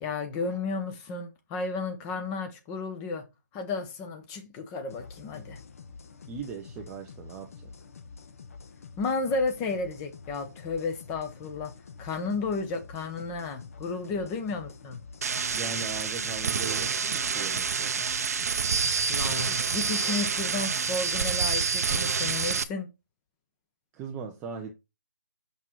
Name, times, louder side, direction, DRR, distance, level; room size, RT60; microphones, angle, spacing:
voice 1, 0.0-3.2 3.5-5.6 9.0-15.0 19.1-22.9, left 3 dB, 15° left, 0.8 m, -33 dB
sound 1, 4.9-20.1, left 4 dB, 45° left, 1.1 m, -47 dB
voice 2, 6.3-7.7 14.2-14.3 15.5-17.9 23.9-24.7, right 5 dB, 10° right, 0.4 m, -39 dB
sound 2, 15.2-22.6, right 5 dB, 50° right, 0.6 m, -28 dB
6.0 x 5.9 x 4.4 m
hypercardioid pair, 165°, 10 cm